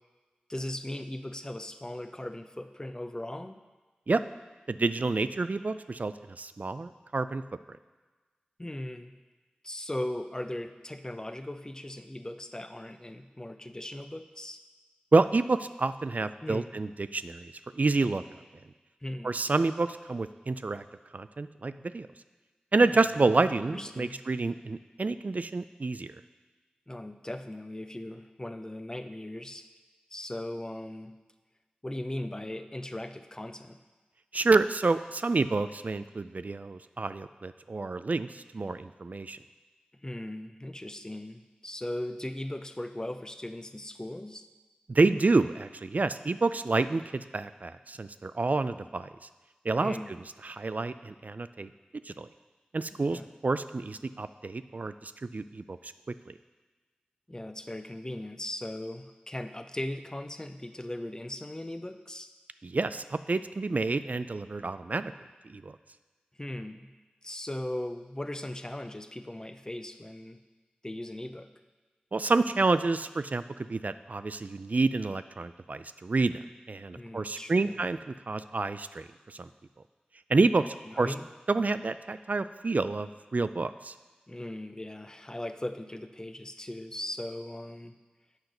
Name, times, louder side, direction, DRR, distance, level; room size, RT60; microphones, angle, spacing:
voice 1, 0.5-3.6 8.6-9.1 9.6-14.6 16.2-16.7 19.0-19.4 22.8-23.1 23.4-23.5 23.7-24.2 26.9-29.7 30.1-31.1 31.8-33.8 40.0-44.5 49.8-50.1 52.9-53.3 57.3-62.3 66.4-66.9 67.2-70.4 70.8-71.5 76.9-77.8 80.6-81.3 84.3-87.9, left 1 dB, 20° left, 8 dB, 0.6 m, -38 dB
voice 2, 4.7-7.4 15.1-18.2 19.2-20.8 21.1-22.1 22.7-26.1 34.3-39.4 44.9-49.1 49.6-50.0 50.4-51.7 52.1-52.3 52.7-55.8 56.3-56.4 62.6-65.1 65.5-65.8 72.1-73.4 73.7-76.4 76.7-79.5 80.3-81.1 81.5-83.9, right 3 dB, 55° right, 12 dB, 0.4 m, -28 dB
8.1 x 6.0 x 5.2 m, 1.3 s
cardioid pair, 40°, 3 cm